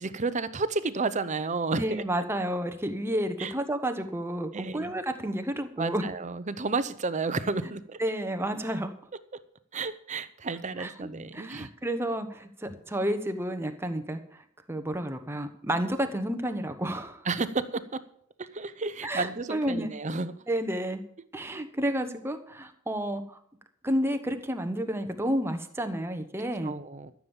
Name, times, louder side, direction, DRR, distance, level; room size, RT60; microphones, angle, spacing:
voice 1, 0.0-2.0 3.4-3.5 4.5-4.9 5.8-8.0 9.7-11.7 17.3-18.0 18.4-20.4 21.5-21.6 26.6-27.1, right 3 dB, 35° right, 13 dB, 0.7 m, -31 dB
voice 2, 1.7-6.0 8.0-8.9 10.8-14.4 14.7-17.2 19.0-19.9 20.5-21.0 21.3-23.4 23.8-26.7, right 1 dB, 10° right, 7 dB, 1.1 m, -31 dB
13.5 x 7.2 x 7.1 m, 0.66 s
head